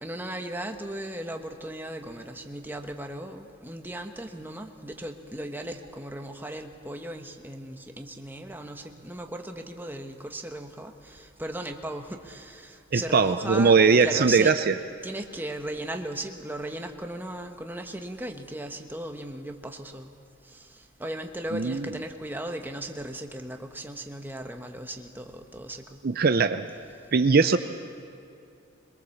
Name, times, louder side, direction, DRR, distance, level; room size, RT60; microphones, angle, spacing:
voice 1, 0.0-14.6 15.0-20.1 20.4-26.0, right 1 dB, 10° right, 4 dB, 1.2 m, -37 dB
voice 2, 12.9-14.7 21.5-21.9 26.0-26.6 27.1-27.6, right 5 dB, 50° right, 9 dB, 0.6 m, -20 dB
22.5 x 22.0 x 7.2 m, 2.5 s
head